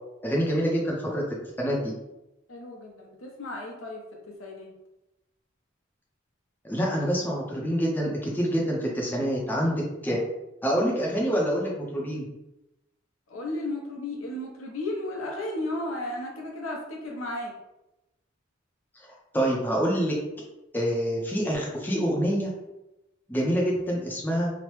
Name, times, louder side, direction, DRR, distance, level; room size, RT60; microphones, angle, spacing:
voice 1, 0.2-1.2 1.6-1.9 6.6-10.2 10.6-12.3 19.0-20.2 20.7-22.5 23.3-24.5, equal, 10° left, -3 dB, 0.4 m, -26 dB
voice 2, 2.5-4.7 13.3-17.5, left 1 dB, 90° left, 0 dB, 0.7 m, -34 dB
3.0 x 2.0 x 3.1 m, 0.93 s
head